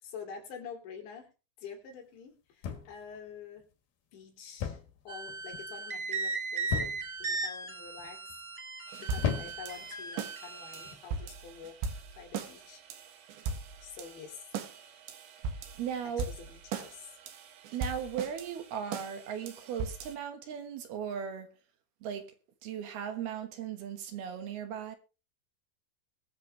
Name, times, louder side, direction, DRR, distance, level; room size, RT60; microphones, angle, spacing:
voice 1, 0.0-1.3 1.6-3.7 4.1-8.4 9.0-12.8 13.8-14.6 16.2-17.2, left 6 dB, 85° left, 5.0 m, -47 dB
sound 1, 2.6-3.2 4.6-5.0 5.3-5.7 6.7-7.2 8.0-8.3 9.2-9.8 10.8-11.0, left 7 dB, 65° left, 3.4 m, -35 dB
sound 2, 5.1-10.9, right 4 dB, 50° right, 0.8 m, -37 dB
sound 3, 8.9-20.2, right 5 dB, 85° right, 3.8 m, -40 dB
voice 2, 15.8-16.3 17.7-21.5 22.0-22.3 22.6-25.0, right 8 dB, 70° right, 3.2 m, -37 dB
21.5 x 7.5 x 3.4 m
omnidirectional pair, 5.1 m